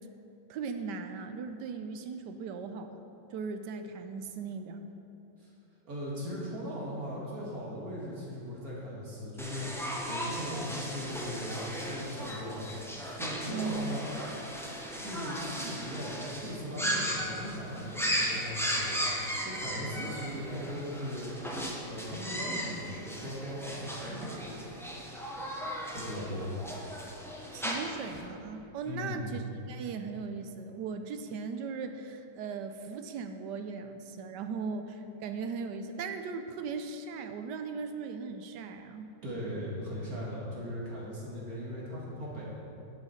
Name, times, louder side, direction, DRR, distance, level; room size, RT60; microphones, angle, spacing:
voice 1, 0.5-3.0 3.3-4.8 13.5-14.0 27.5-39.1, right 5 dB, 75° right, 7 dB, 1.2 m, -38 dB
voice 2, 5.8-12.7 12.9-14.2 14.9-19.0 19.4-24.7 25.9-26.5 28.8-29.4 39.2-42.5, equal, 55° right, -6 dB, 2.2 m, -39 dB
sound 1, 9.4-28.2, equal, 5° left, 0.3 m, -36 dB
10.5 x 7.2 x 4.3 m, 2.9 s
omnidirectional pair, 2.0 m